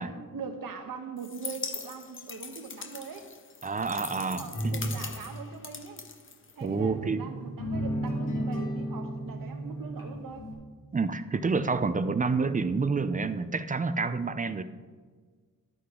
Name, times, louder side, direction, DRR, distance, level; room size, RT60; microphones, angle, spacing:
voice 1, 0.0-3.3 4.2-6.0 6.5-10.4, right 5 dB, 80° right, 6 dB, 1.2 m, -41 dB
sound 1, 1.2-6.9, left 5 dB, 35° left, 0.8 m, -41 dB
voice 2, 3.6-4.9 6.6-7.3 10.9-14.6, right 4 dB, 25° right, 12 dB, 0.5 m, -28 dB
sound 2, 4.5-5.1 6.6-10.5, equal, 70° left, 2.6 m, -33 dB
11.5 x 8.5 x 3.8 m, 1.5 s
wide cardioid pair, 120°, 34 cm